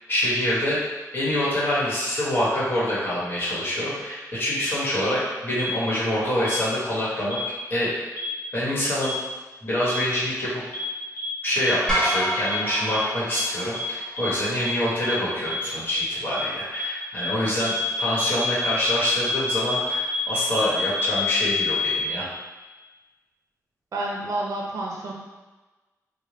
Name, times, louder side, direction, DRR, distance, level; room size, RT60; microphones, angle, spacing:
voice 1, 0.1-0.8 1.1-7.4 7.7-7.9 8.5-9.1 9.6-10.6 11.4-17.7 18.0-22.3, left 1 dB, 35° left, -8 dB, 1.2 m, -25 dB
sound 1, 5.6-5.7 6.4-6.5 7.3-7.4 8.2-8.3 9.0-9.1 9.9-10.0 10.7-10.8 11.2-11.3 11.6-11.7 12.0-12.1 12.4-12.5 12.9-13.0 13.3-13.4 13.7-13.8 14.2-14.3 14.6-14.7 15.0-15.1 15.4-15.5 15.9-16.0 16.3-16.4 16.7-16.8 17.2-17.3 17.6-22.0, left 4 dB, 60° left, 1.0 m, -28 dB
sound 2, 11.9-14.2, equal, 10° left, 1.0 m, -28 dB
voice 2, 23.9-25.1, right 2 dB, 60° right, -2 dB, 0.6 m, -29 dB
3.9 x 2.2 x 3.2 m, 1.2 s
wide cardioid pair, 155°, 6 cm